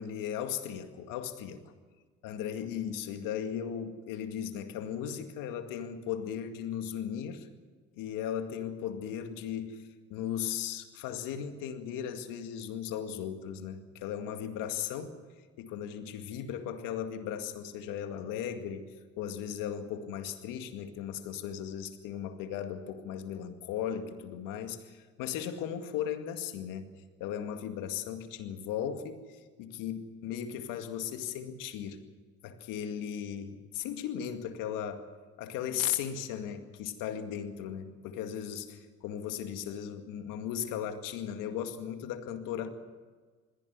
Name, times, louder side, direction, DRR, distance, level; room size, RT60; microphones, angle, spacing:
voice 1, 0.0-1.6 2.2-7.5 8.0-15.2 15.6-18.9 19.2-26.9 27.2-32.0 32.4-35.1 35.4-42.7, left 9 dB, 80° left, 7 dB, 2.2 m, -37 dB
21.0 x 16.0 x 9.5 m, 1.4 s
supercardioid pair, 65°, 32 cm